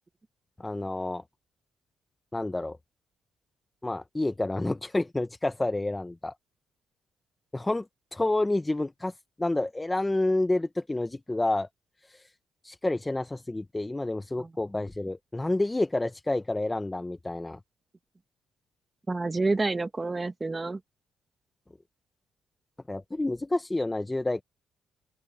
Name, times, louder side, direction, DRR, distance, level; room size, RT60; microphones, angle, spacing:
voice 1, 0.6-1.2 2.3-2.8 3.8-6.3 7.5-7.9 8.1-9.1 9.4-11.7 12.0-12.3 12.6-17.6 22.9-24.4, left 2 dB, 15° left, 0.9 m, -29 dB
voice 2, 19.1-20.8, right 3 dB, 25° right, 1.6 m, -28 dB
open air
cardioid pair, 90°, 0 cm